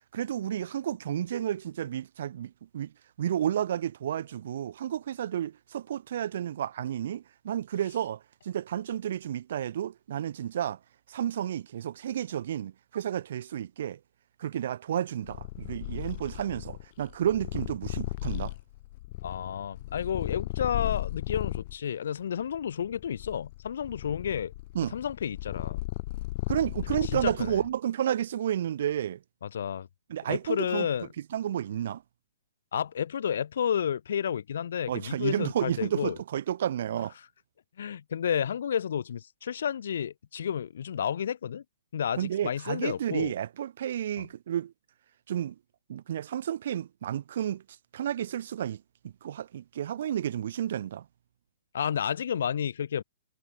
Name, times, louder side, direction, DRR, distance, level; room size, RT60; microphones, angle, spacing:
voice 1, 0.1-2.9 3.2-10.8 11.1-14.0 14.4-18.5 24.7-24.9 26.5-29.2 30.1-30.9 31.3-32.0 34.9-37.1 42.2-44.7 45.3-45.6 45.9-47.6 47.9-51.1, right 10 dB, 50° right, 2.3 m, -31 dB
Purr, 15.2-21.8 22.4-27.7, left 19 dB, 30° left, 5.3 m, -36 dB
voice 2, 19.2-24.5 24.9-25.8 27.1-27.6 29.5-29.9 30.3-31.1 32.7-36.2 37.8-41.6 41.9-43.3 44.2-44.3 51.7-53.0, left 8 dB, 60° left, 3.3 m, -31 dB
hypercardioid pair, 175°, 0 cm